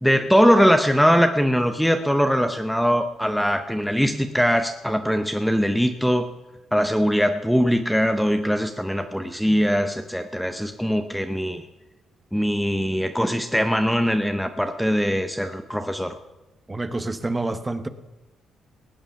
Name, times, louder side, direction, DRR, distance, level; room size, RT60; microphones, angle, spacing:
voice 1, 0.0-6.3 6.7-11.6 12.3-16.2, equal, ahead, 7 dB, 0.8 m, -21 dB
voice 2, 16.7-17.9, right 2 dB, 20° right, 11 dB, 1.1 m, -27 dB
18.5 x 8.8 x 5.8 m, 1.1 s
cardioid pair, 95°, 0 cm